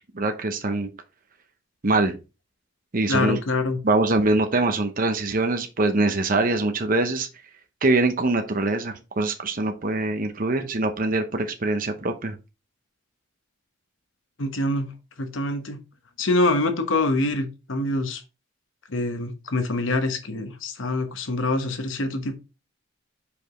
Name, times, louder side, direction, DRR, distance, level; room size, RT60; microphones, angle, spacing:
voice 1, 0.1-0.9 1.8-2.2 2.9-3.4 3.8-7.3 7.8-12.3, right 2 dB, 45° right, 6 dB, 0.9 m, -23 dB
voice 2, 3.1-3.8 14.4-14.9 15.2-15.8 16.2-18.2 18.9-22.3, left 2 dB, 85° left, 7 dB, 1.1 m, -25 dB
5.3 x 4.9 x 3.8 m, 0.29 s
head